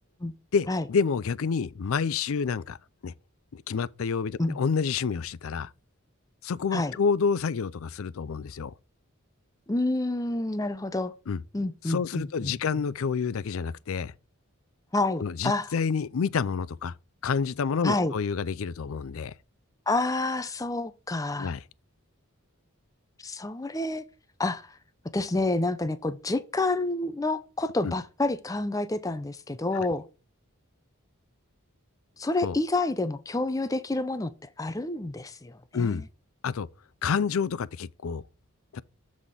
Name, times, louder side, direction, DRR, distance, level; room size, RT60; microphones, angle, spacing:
voice 1, 0.5-2.8 3.0-3.1 3.5-5.7 6.4-8.7 11.3-11.4 11.8-14.1 15.2-16.9 17.2-19.3 21.4-21.6 27.8-27.9 29.7-29.9 32.4-32.6 35.7-36.0 36.4-36.7 37.0-38.2 38.7-38.8, left 5 dB, 75° left, 0.4 m, -28 dB
voice 2, 9.7-11.1 11.5-12.6 14.9-15.7 17.8-18.1 19.9-21.5 23.2-24.0 24.4-24.8 25.1-30.0 32.2-34.3 34.6-36.0, left 2 dB, 15° left, 0.4 m, -28 dB
7.4 x 4.2 x 4.9 m
head